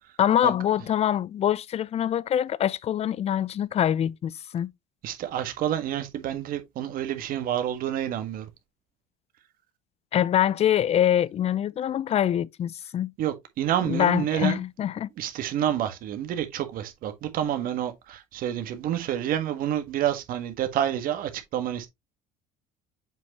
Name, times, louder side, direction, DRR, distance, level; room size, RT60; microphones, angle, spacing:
voice 1, 0.2-4.7 10.1-13.1 13.8-15.1, left 10 dB, 40° left, 0.5 m, -24 dB
voice 2, 5.0-8.5 13.2-14.6 15.2-21.9, right 10 dB, 60° right, 1.6 m, -28 dB
7.5 x 5.2 x 2.9 m
supercardioid pair, 85°, 17 cm